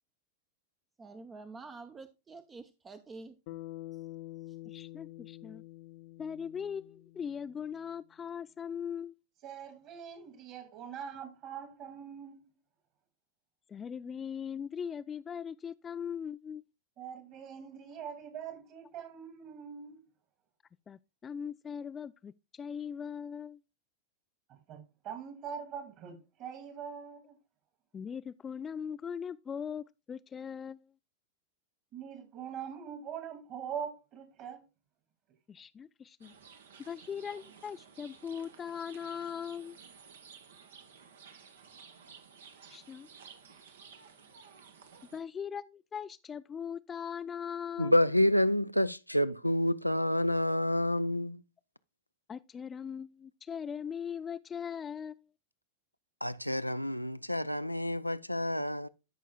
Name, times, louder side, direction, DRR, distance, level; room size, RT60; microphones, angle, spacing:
voice 1, 1.0-3.3 4.5-4.6, right 3 dB, 20° right, 0.7 m, -48 dB
Bass guitar, 3.5-7.8, left 17 dB, 50° left, 0.7 m, -47 dB
voice 2, 4.7-5.6 6.2-9.2 13.7-16.6 20.9-23.6 27.9-30.9 35.5-36.3 36.8-39.8 42.7-43.1 45.1-48.0 52.3-55.3, left 7 dB, 20° left, 0.3 m, -40 dB
voice 3, 9.4-12.5 17.0-20.1 24.5-27.4 31.9-34.6, right 8 dB, 40° right, 2.3 m, -43 dB
sound 1, 36.2-45.2, right 6 dB, 65° right, 1.2 m, -54 dB
voice 4, 47.8-51.4 56.2-58.9, left 1 dB, 90° left, 0.4 m, -28 dB
13.5 x 5.5 x 2.3 m
figure-of-eight pair, 90°, 0 cm